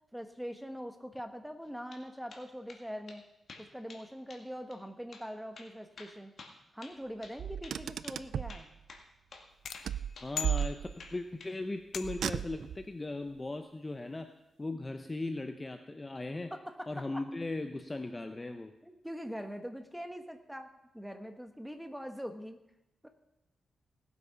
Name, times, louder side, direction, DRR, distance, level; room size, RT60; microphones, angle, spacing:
voice 1, 0.1-3.2 3.6-6.3 6.7-8.7 16.5-17.2 18.8-22.6 23.0-23.1, equal, ahead, 7 dB, 1.1 m, -43 dB
sound 1, 1.6-2.0 2.3-2.8 3.1-3.2 3.5-4.0 4.3-4.4 4.7-4.8 5.1-5.3 5.6-7.4 7.6-7.8 8.0-8.2 8.5-9.1 9.3-9.5 9.7-10.7 11.0-11.5, left 4 dB, 50° left, 1.8 m, -51 dB
Car, 7.4-8.6 9.9-11.2 12.0-12.9, right 9 dB, 80° right, 0.4 m, -35 dB
sound 2, 9.6-11.3 11.9-12.5, left 7 dB, 70° left, 0.8 m, -41 dB
voice 2, 10.2-14.3 14.6-16.5 16.9-18.7, left 2 dB, 20° left, 7 dB, 0.7 m, -38 dB
17.5 x 8.2 x 5.6 m, 0.90 s
wide cardioid pair, 130°, 0 cm